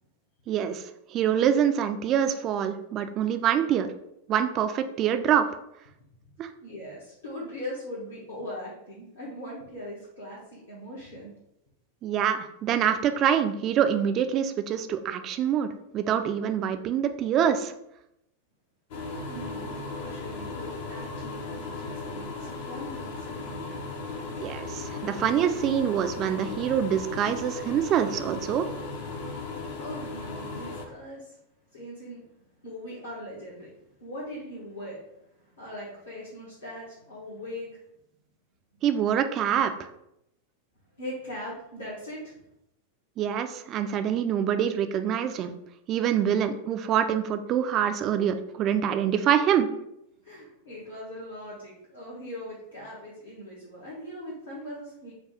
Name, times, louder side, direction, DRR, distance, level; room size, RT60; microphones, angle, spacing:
voice 1, 0.5-0.8 1.1-3.9 4.3-5.5 6.4-6.5 12.0-17.7 24.4-28.7 38.8-39.9 43.2-45.5 45.9-49.7, right 9 dB, 35° right, 9 dB, 0.3 m, -25 dB
voice 2, 6.6-11.3 19.3-23.7 29.7-31.4 31.7-32.2 32.6-33.7 34.0-35.1 35.3-37.8 41.0-42.3 50.2-55.1, equal, 70° left, -7 dB, 1.3 m, -40 dB
sound 1, 18.9-30.9, left 3 dB, 55° left, 0.6 m, -36 dB
5.0 x 2.3 x 4.1 m, 0.81 s
figure-of-eight pair, 90°, 0 cm